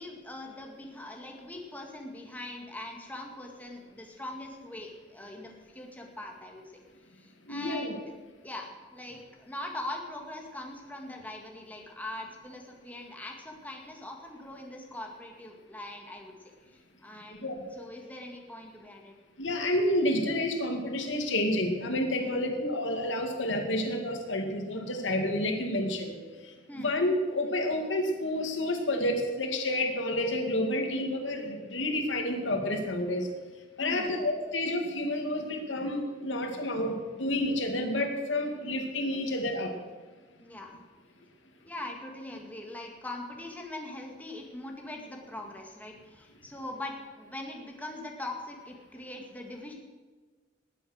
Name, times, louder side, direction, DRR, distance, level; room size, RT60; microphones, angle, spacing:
voice 1, 0.0-6.6 7.1-8.0 8.4-16.3 16.7-19.1 19.5-19.6 22.2-22.4 26.7-26.9 33.8-34.2 40.4-40.8 41.6-49.7, left 1 dB, 10° left, 1 dB, 1.9 m, -42 dB
voice 2, 7.5-8.0 17.4-17.5 19.4-26.1 26.8-33.3 33.8-39.7, left 1 dB, 90° left, 4 dB, 2.2 m, -29 dB
19.5 x 8.6 x 6.4 m, 1.4 s
head